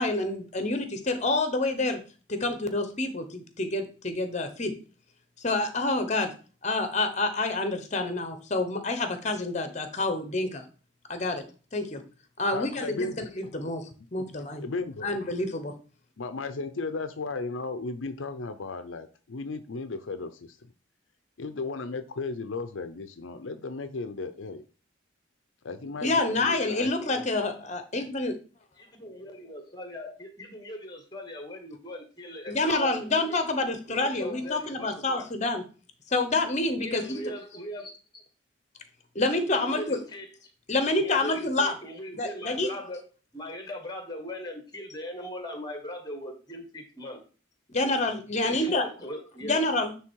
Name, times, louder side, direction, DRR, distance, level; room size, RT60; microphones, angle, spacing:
voice 1, 0.0-2.0 2.3-4.7 5.4-6.3 6.6-10.6 11.1-11.4 11.7-12.0 12.4-14.6 15.0-15.7 26.0-28.4 32.5-35.6 36.1-37.2 39.1-40.0 40.7-41.8 42.1-42.7 47.7-48.8 49.4-49.9, left 2 dB, 35° left, 8 dB, 1.0 m, -28 dB
voice 2, 12.5-13.2 14.6-15.1 16.2-20.6 21.4-24.6 25.6-27.2, left 3 dB, 75° left, 10 dB, 0.6 m, -35 dB
voice 3, 28.8-33.5 33.9-35.2 36.7-38.2 39.5-40.3 41.0-43.0 43.3-47.2 48.4-49.6, left 1 dB, 20° left, 5 dB, 1.4 m, -39 dB
9.7 x 3.5 x 4.6 m, 0.37 s
head